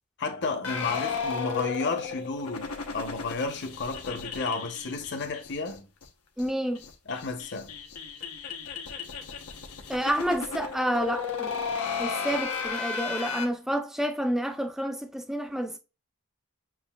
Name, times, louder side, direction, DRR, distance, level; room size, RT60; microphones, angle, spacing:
voice 1, 0.2-5.9 7.1-7.7, left 3 dB, 50° left, 1.0 m, -32 dB
sound 1, 0.6-5.7 6.0-6.1 6.4-6.5 6.8-13.5, left 6 dB, 85° left, 1.0 m, -34 dB
voice 2, 6.4-6.8 9.9-11.5 12.0-15.8, equal, ahead, 0.6 m, -29 dB
7.4 x 2.8 x 2.3 m
head